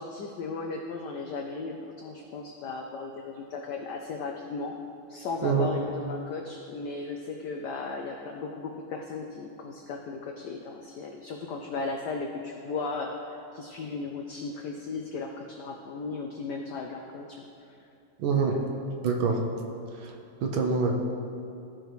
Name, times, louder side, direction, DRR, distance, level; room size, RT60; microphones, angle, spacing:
voice 1, 0.0-4.7 5.1-17.4 18.3-18.6, left 4 dB, 80° left, 2 dB, 0.9 m, -36 dB
voice 2, 18.2-18.6 19.0-19.4 20.4-20.9, right 5 dB, 70° right, 2 dB, 1.5 m, -25 dB
14.0 x 4.9 x 3.1 m, 2.6 s
omnidirectional pair, 2.4 m